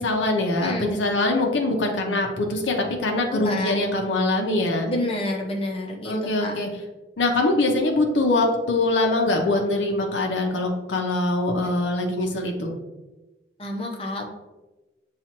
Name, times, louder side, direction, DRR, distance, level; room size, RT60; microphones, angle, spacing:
voice 1, 0.0-4.9 6.0-6.7 7.2-12.7, left 2 dB, 90° left, 2 dB, 0.7 m, -23 dB
voice 2, 0.6-0.9 3.3-3.9 4.9-6.5 13.6-14.2, left 1 dB, 30° left, 0 dB, 0.6 m, -29 dB
7.2 x 2.4 x 2.9 m, 1.1 s
head